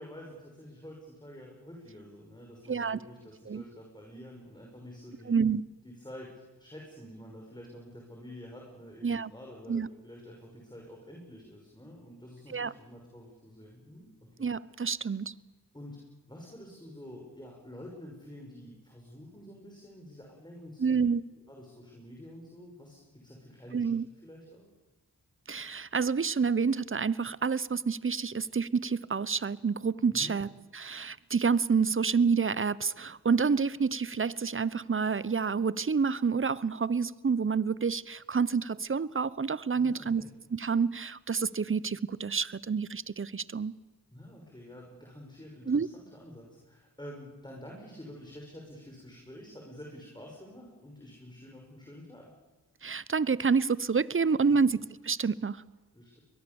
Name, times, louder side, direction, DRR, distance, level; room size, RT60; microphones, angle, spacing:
voice 1, 0.0-5.3 5.8-14.5 14.9-15.1 15.7-16.0 16.3-21.0 21.5-23.8 24.2-24.7 30.1-30.4 39.7-40.3 44.1-52.3 54.5-54.6 55.9-56.2, equal, 10° left, -1 dB, 6.1 m, -48 dB
voice 2, 2.7-3.0 3.5-3.6 5.3-5.6 9.0-9.3 9.7-9.9 12.5-12.7 14.4-15.3 20.8-21.2 23.7-24.0 25.5-40.2 40.5-43.7 45.7-45.9 52.8-54.8 55.0-55.6, right 5 dB, 35° right, 20 dB, 0.8 m, -28 dB
23.0 x 21.5 x 7.1 m, 1.2 s
cardioid pair, 45°, 38 cm